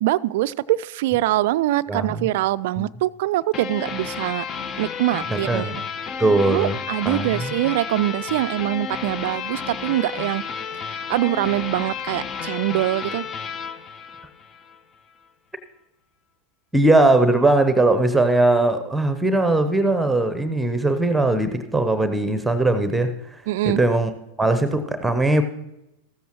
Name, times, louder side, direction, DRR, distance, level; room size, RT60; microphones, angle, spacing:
voice 1, 0.0-4.4 4.8-5.7 6.5-10.4 10.7-13.2 23.5-23.8, right 16 dB, 50° right, 0.3 m, -23 dB
voice 2, 1.9-2.2 2.8-2.9 5.2-5.8 6.2-6.8 7.0-7.5 16.7-23.1 23.7-24.1 24.4-25.4, right 2 dB, 5° right, 0.9 m, -20 dB
sound 1, 3.5-14.8, left 6 dB, 25° left, 0.6 m, -32 dB
14.5 x 14.0 x 3.0 m
figure-of-eight pair, 90°, 0 cm